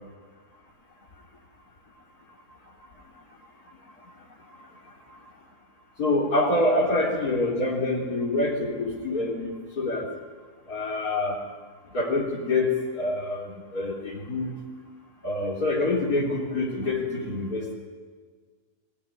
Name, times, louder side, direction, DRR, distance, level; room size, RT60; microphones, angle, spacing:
voice 1, 6.0-10.1 10.7-11.4 11.9-14.6 15.2-17.7, left 2 dB, 80° left, -4 dB, 4.2 m, -26 dB
23.0 x 19.0 x 9.8 m, 1.5 s
omnidirectional pair, 1.6 m